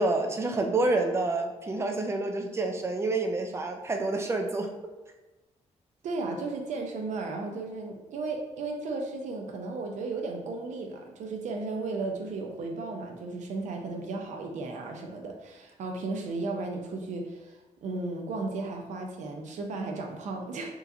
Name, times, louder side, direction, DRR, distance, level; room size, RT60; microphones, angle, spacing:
voice 1, 0.0-4.7, right 2 dB, 20° right, 3 dB, 0.5 m, -28 dB
voice 2, 6.0-20.7, right 3 dB, 75° right, 2 dB, 0.7 m, -35 dB
4.7 x 3.1 x 2.6 m, 1.2 s
wide cardioid pair, 155°, 12 cm